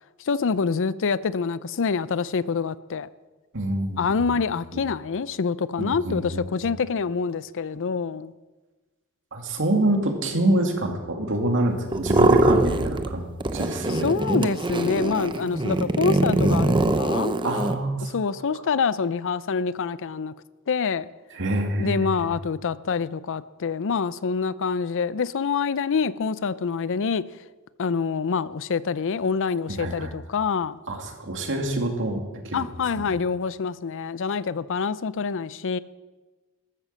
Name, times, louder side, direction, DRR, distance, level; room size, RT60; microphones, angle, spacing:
voice 1, 0.2-3.1 4.0-8.3 13.9-17.4 18.0-20.3 20.7-21.1 21.8-27.2 27.8-30.8 32.5-35.8, left 5 dB, 60° left, 0.5 m, -26 dB
voice 2, 3.5-4.3 4.7-4.8 5.8-6.8 9.3-14.1 17.4-18.1 21.3-22.3 29.7-30.1 30.9-32.6, right 1 dB, 60° right, 2.5 m, -26 dB
sound 1, 11.9-13.1 13.4-17.8, right 2 dB, 20° right, 0.8 m, -22 dB
13.5 x 12.5 x 7.5 m
head